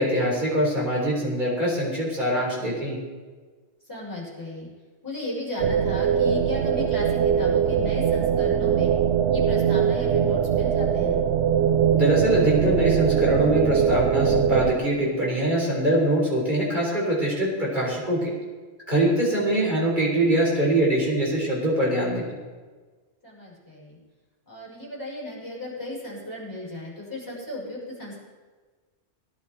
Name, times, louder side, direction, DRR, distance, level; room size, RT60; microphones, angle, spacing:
voice 1, 0.0-3.0 12.0-18.3 18.9-22.3, right 1 dB, 40° right, -4 dB, 4.4 m, -23 dB
voice 2, 3.9-4.7 5.0-8.9 9.3-11.2 23.2-24.0 24.5-28.2, left 1 dB, 15° left, -7 dB, 5.9 m, -35 dB
sound 1, 5.6-14.7, right 8 dB, 75° right, 0.9 m, -22 dB
19.0 x 11.5 x 4.4 m, 1.4 s
omnidirectional pair, 1.2 m